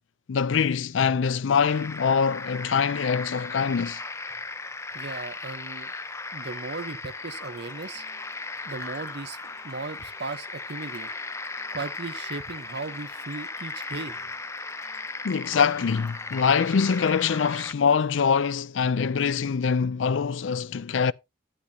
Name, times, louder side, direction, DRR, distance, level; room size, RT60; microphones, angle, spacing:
voice 1, 0.3-4.0 15.2-21.1, left 6 dB, 80° left, 0.4 m, -24 dB
sound 1, 1.7-17.7, left 3 dB, 15° left, 0.6 m, -37 dB
voice 2, 4.9-5.9 6.3-8.0 8.6-11.1 11.7-14.2, right 3 dB, 60° right, 0.9 m, -37 dB
sound 2, 7.2-17.2, left 2 dB, 40° left, 2.0 m, -56 dB
11.0 x 10.0 x 2.8 m
head